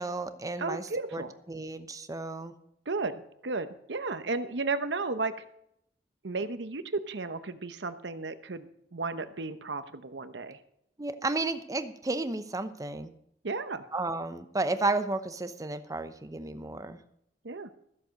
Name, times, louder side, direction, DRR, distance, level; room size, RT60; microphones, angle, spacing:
voice 1, 0.0-1.2 1.5-2.5 11.0-13.1 13.9-17.0, right 2 dB, 20° right, 10 dB, 0.8 m, -32 dB
voice 2, 0.6-1.3 2.9-5.3 6.2-10.6 13.4-13.8 17.4-17.7, right 3 dB, 75° right, 11 dB, 0.9 m, -34 dB
14.0 x 7.7 x 6.4 m, 0.76 s
head